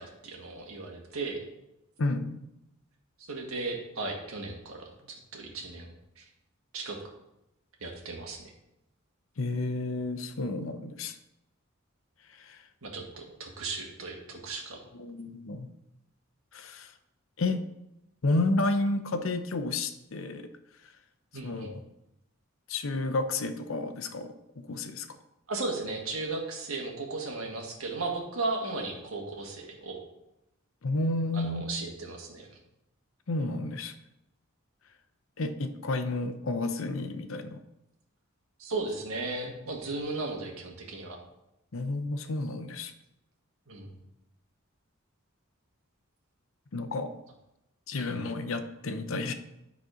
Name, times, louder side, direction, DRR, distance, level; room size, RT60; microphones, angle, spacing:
voice 1, 0.0-1.4 3.3-5.9 6.2-6.3 6.7-7.0 7.8-8.5 12.8-14.8 21.3-21.7 25.5-30.0 31.3-32.6 38.6-41.2 43.7-43.9 48.0-48.2, right 3 dB, 80° right, 1 dB, 1.7 m, -36 dB
voice 2, 2.0-2.4 9.4-11.2 12.3-12.6 14.9-15.7 16.5-16.9 17.4-17.6 18.2-20.5 21.4-21.8 22.7-25.1 30.8-31.7 33.3-33.9 35.4-37.6 41.7-42.9 46.7-47.1 47.9-49.3, left 2 dB, 70° left, 8 dB, 0.7 m, -31 dB
9.3 x 4.1 x 5.0 m, 0.88 s
head